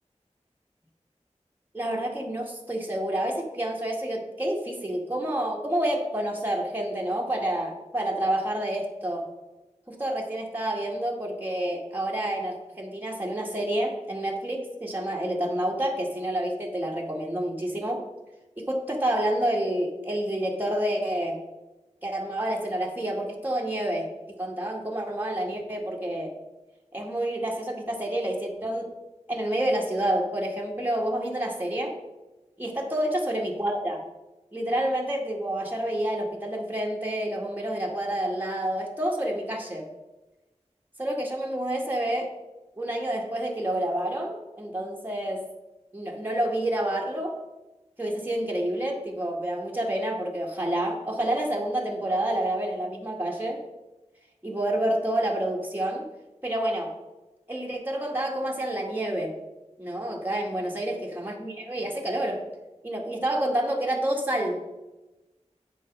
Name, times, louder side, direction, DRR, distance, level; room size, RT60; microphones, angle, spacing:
voice 1, 1.7-9.2 9.9-18.1 18.6-21.4 22.0-24.1 24.4-26.3 26.9-28.9 29.3-32.0 32.6-34.0 34.5-39.9 41.0-42.3 42.8-45.5 45.9-47.4 48.0-53.6 54.4-56.1 56.4-56.9 57.5-59.3 59.8-62.4 62.8-64.6, right 1 dB, 15° right, -2 dB, 1.7 m, -28 dB
8.9 x 5.4 x 5.3 m, 1.0 s
wide cardioid pair, 45°, 12 cm